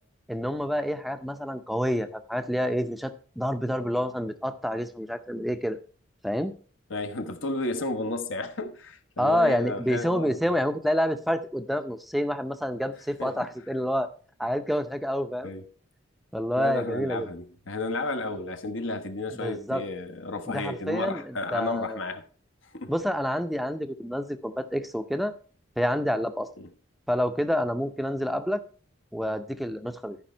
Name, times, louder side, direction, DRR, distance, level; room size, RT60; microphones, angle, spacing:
voice 1, 0.3-5.8 6.2-6.5 9.2-14.1 14.4-15.5 16.3-17.3 19.4-19.8 20.5-22.0 22.9-25.3 25.8-26.5 27.1-28.6 29.1-30.2, equal, ahead, 0.5 m, -28 dB
voice 2, 6.9-10.5 13.2-13.4 15.4-15.6 16.6-22.2 22.7-22.9 26.6-26.7, left 2 dB, 75° left, 1.2 m, -32 dB
13.0 x 5.2 x 4.3 m
head